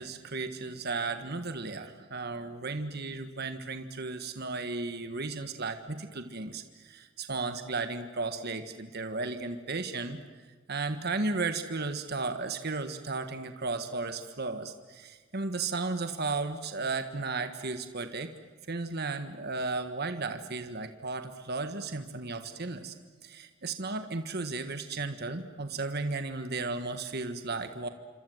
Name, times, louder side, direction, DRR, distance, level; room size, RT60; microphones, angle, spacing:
voice 1, 0.0-10.2 10.7-18.3 18.7-22.9 23.2-27.9, right 3 dB, 50° right, 8 dB, 1.5 m, -34 dB
27.5 x 26.0 x 7.9 m, 1.4 s
head